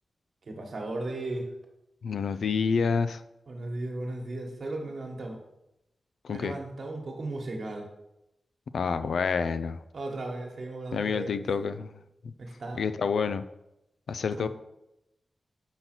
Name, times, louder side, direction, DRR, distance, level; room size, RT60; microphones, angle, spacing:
voice 1, 0.4-1.5 3.5-5.4 6.3-7.9 9.9-11.5 12.4-13.1 14.3-14.5, right 2 dB, 65° right, 1 dB, 1.4 m, -36 dB
voice 2, 2.0-3.2 6.2-6.5 8.7-9.8 10.9-11.9 12.2-12.3 12.8-13.5 14.1-14.5, left 5 dB, 85° left, 11 dB, 0.3 m, -28 dB
5.7 x 3.9 x 5.9 m, 0.88 s
cardioid pair, 65°, 0 cm